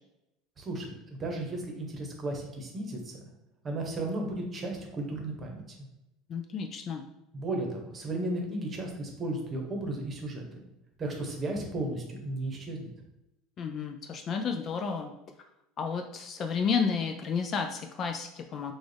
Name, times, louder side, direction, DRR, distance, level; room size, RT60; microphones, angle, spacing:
voice 1, 0.6-3.2 3.6-5.9 7.3-10.6 11.0-12.9, right 2 dB, 25° right, 1 dB, 1.0 m, -34 dB
voice 2, 6.3-7.0 13.6-15.1 15.8-18.7, left 6 dB, 35° left, 5 dB, 0.4 m, -31 dB
6.1 x 2.4 x 3.3 m, 0.90 s
cardioid pair, 150°, 0 cm